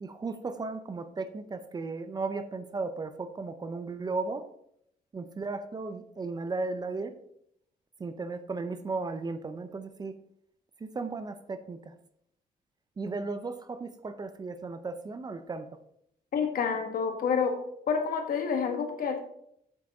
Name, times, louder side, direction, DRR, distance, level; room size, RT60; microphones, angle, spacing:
voice 1, 0.0-4.4 5.1-7.1 8.0-10.1 10.9-11.8 13.0-15.7, right 3 dB, 25° right, 10 dB, 0.6 m, -35 dB
voice 2, 16.3-17.6 17.9-19.2, left 6 dB, 70° left, 4 dB, 1.6 m, -28 dB
7.8 x 6.2 x 4.8 m, 0.72 s
wide cardioid pair, 160°, 15 cm